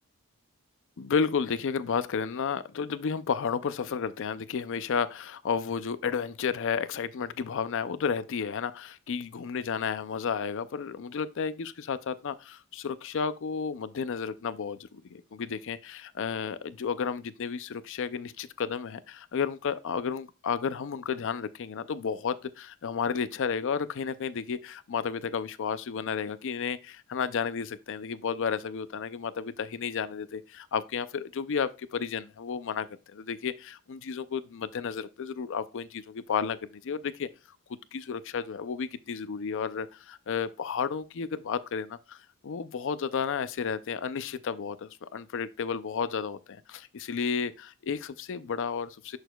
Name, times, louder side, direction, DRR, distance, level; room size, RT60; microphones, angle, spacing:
voice 1, 1.0-37.3 37.9-49.2, left 6 dB, 60° left, 0.5 m, -32 dB
8.0 x 6.5 x 2.3 m
head